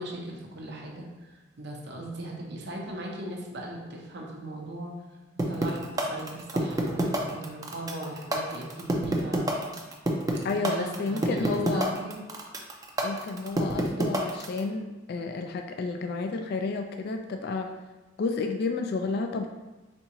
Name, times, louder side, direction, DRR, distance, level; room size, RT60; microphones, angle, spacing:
voice 1, 0.0-5.0 5.5-9.5 10.5-12.2, right 1 dB, 60° right, -1 dB, 0.8 m, -38 dB
sound 1, 5.4-14.6, right 1 dB, 20° right, 0.5 m, -27 dB
voice 2, 10.4-11.9 13.0-17.7 18.2-19.5, left 4 dB, 55° left, 5 dB, 0.3 m, -31 dB
4.3 x 3.5 x 2.9 m, 1.1 s
head